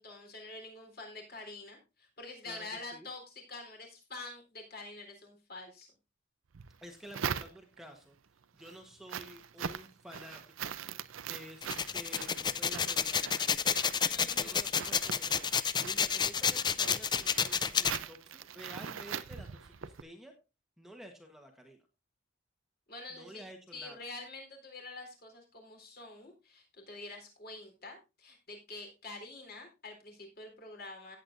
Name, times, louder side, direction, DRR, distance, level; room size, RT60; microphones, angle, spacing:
voice 1, 0.0-5.9 14.0-14.6 22.9-23.4 23.7-31.2, left 3 dB, 50° left, 3 dB, 3.7 m, -46 dB
sound 1, 6.5-8.0 8.4-20.0, right 7 dB, 85° right, 0.6 m, -42 dB
voice 2, 6.8-8.1 8.6-10.7 11.3-13.9 14.4-20.3 20.8-21.8 23.1-24.1, equal, ahead, 3 dB, 1.2 m, -51 dB
sound 2, 11.6-18.0, left 7 dB, 20° left, 0.4 m, -30 dB
17.0 x 8.0 x 2.6 m, 0.29 s
head